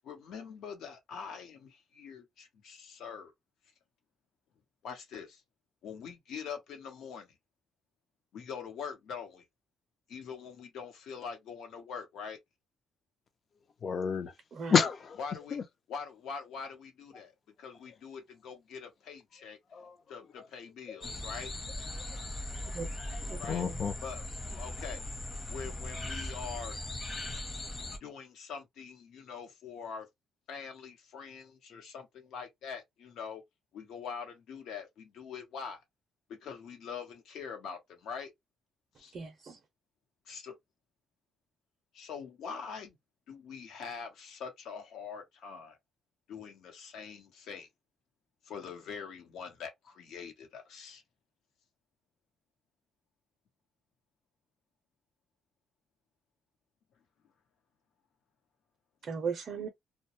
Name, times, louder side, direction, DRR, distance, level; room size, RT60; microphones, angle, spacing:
voice 1, 0.0-3.3 4.8-5.4 5.8-7.3 8.3-9.4 10.1-12.4 15.2-15.6 15.9-17.3 17.6-19.6 20.1-21.5 23.4-23.6 24.0-24.2 24.5-25.0 25.5-26.8 28.0-30.1 30.5-33.4 33.7-35.8 36.3-38.3 39.0-39.1 40.3-40.6 41.9-43.0 43.3-45.8 46.3-47.7 48.4-51.0, left 6 dB, 75° left, 0.9 m, -43 dB
voice 2, 13.8-14.3 14.7-15.2 15.5-15.6 19.7-19.9 20.9-21.0 23.0-23.9, left 6 dB, 45° left, 0.5 m, -30 dB
sound 1, 21.0-28.0, left 1 dB, 30° left, 0.8 m, -39 dB
voice 3, 23.3-23.8 39.1-39.6 59.1-59.7, right 5 dB, 45° right, 0.5 m, -37 dB
2.2 x 2.0 x 2.8 m
cardioid pair, 115°, 0 cm